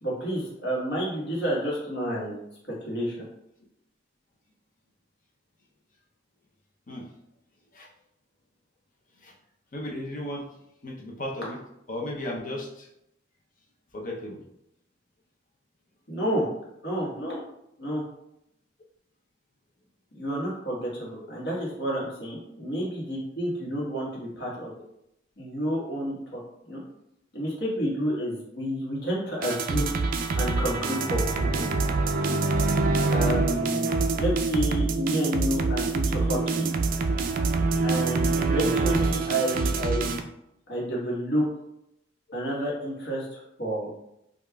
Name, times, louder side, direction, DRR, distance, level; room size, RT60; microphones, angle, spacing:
voice 1, 0.0-2.4 2.8-3.2 16.1-16.4 16.8-17.4 17.8-18.0 20.1-24.7 25.4-26.8 27.3-29.9 30.4-31.6 33.1-36.7 37.8-40.2 40.7-41.4 42.3-44.0, equal, 65° left, -4 dB, 1.3 m, -30 dB
voice 2, 9.7-10.5 10.8-11.6 11.9-12.9 13.9-14.4 36.3-36.5, left 1 dB, 45° left, 0 dB, 0.6 m, -35 dB
sound 1, 29.4-40.2, right 3 dB, 50° right, 0.3 m, -25 dB
5.2 x 2.4 x 2.2 m, 0.80 s
head